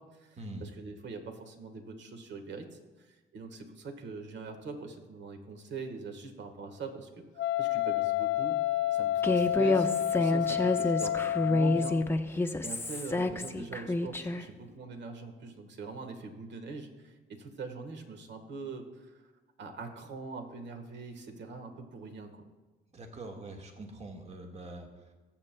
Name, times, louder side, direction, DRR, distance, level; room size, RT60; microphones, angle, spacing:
voice 1, 0.0-8.6 8.9-12.0 12.3-19.3 19.6-22.5, right 4 dB, 65° right, 6 dB, 1.4 m, -43 dB
Wind instrument woodwind instrument, 7.4-12.1, left 12 dB, 65° left, 0.6 m, -29 dB
Human voice, 9.2-14.4, left 2 dB, 10° left, 0.7 m, -28 dB
voice 2, 22.9-25.1, right 2 dB, 35° right, 2 dB, 1.6 m, -44 dB
22.0 x 7.6 x 2.2 m, 1.2 s
cardioid pair, 90°, 20 cm